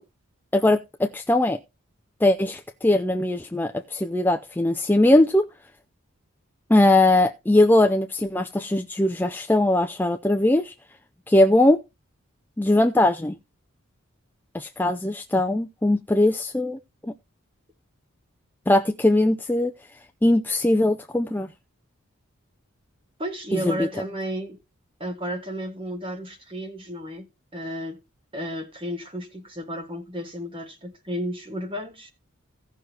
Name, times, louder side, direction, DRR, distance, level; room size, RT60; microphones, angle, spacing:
voice 1, 0.5-1.6 2.2-5.5 6.7-10.7 11.3-11.8 12.6-13.4 14.5-16.8 18.7-19.7 20.2-21.5 23.5-23.9, left 1 dB, 10° left, 0.4 m, -20 dB
voice 2, 23.2-24.6 25.0-27.3 27.5-28.0 28.3-32.1, equal, 25° right, 1.7 m, -33 dB
16.5 x 6.2 x 2.9 m
head